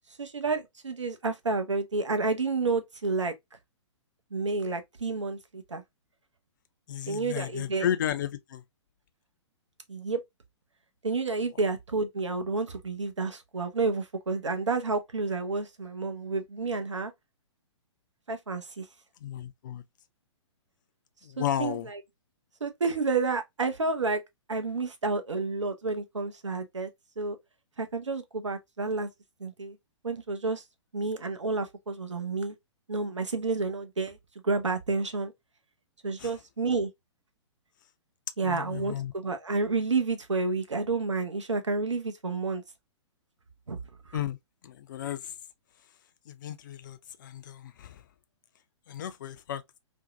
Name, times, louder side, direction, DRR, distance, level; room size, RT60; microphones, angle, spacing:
voice 1, 0.2-3.3 4.3-5.8 7.1-7.9 9.9-10.2 11.0-17.1 18.3-18.9 21.4-22.0 22.6-24.2 24.5-26.9 27.2-27.4 27.8-29.1 29.4-29.8 30.0-30.6 30.9-32.6 32.9-34.2 34.4-35.3 36.0-36.9 38.4-42.6 43.7-43.8, right 3 dB, 75° right, 0.6 m, -30 dB
voice 2, 6.9-8.6 19.2-19.8 21.2-21.9 36.2-36.3 38.4-39.1 44.1-44.4 44.6-45.3 46.3-48.0 48.9-49.6, left 10 dB, 40° left, 0.4 m, -33 dB
2.6 x 2.1 x 2.5 m
figure-of-eight pair, 115°, 15 cm